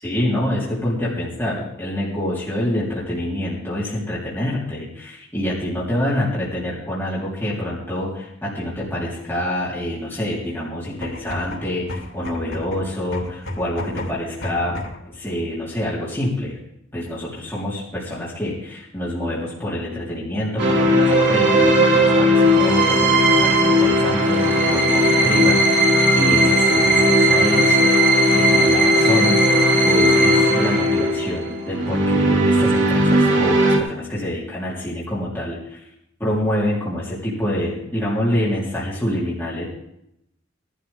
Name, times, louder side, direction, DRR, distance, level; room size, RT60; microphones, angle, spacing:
voice 1, 0.0-14.8 15.1-16.6 16.9-28.1 28.3-35.8 36.2-39.7, left 1 dB, 10° left, -8 dB, 3.7 m, -26 dB
sound 1, 10.9-15.1, left 1 dB, 80° left, 3.1 m, -33 dB
sound 2, 20.6-33.8, equal, 65° right, 2.7 m, -16 dB
18.0 x 12.0 x 3.7 m, 0.78 s
head